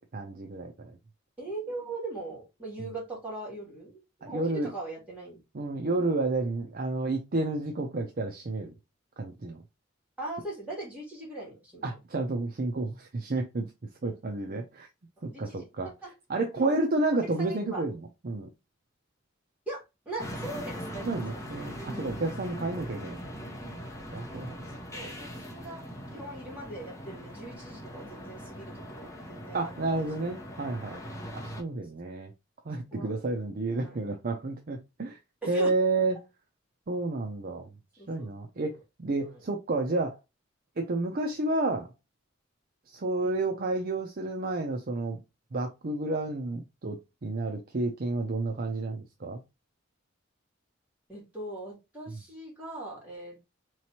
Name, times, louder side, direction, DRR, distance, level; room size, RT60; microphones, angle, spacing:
voice 1, 0.1-1.0 4.2-4.7 5.5-8.7 9.2-9.6 11.8-13.7 14.0-14.9 15.2-15.9 16.3-18.0 18.2-18.5 21.0-23.4 24.1-24.6 29.5-31.0 31.3-32.3 32.6-35.2 35.5-36.2 36.9-37.7 38.1-40.2 40.8-41.9 42.9-45.2 45.5-49.4, right 2 dB, 50° right, 0.6 m, -30 dB
voice 2, 1.4-5.4 10.2-12.0 15.2-16.1 16.5-16.8 17.4-17.8 19.7-21.4 22.7-22.8 24.9-25.8 26.1-30.0 32.9-33.1 33.7-34.1 35.4-35.7 38.0-38.3 39.2-39.4 51.1-53.4, right 2 dB, 10° right, 2.4 m, -40 dB
sound 1, 20.2-31.6, equal, 15° left, 1.0 m, -41 dB
4.1 x 3.1 x 2.8 m
head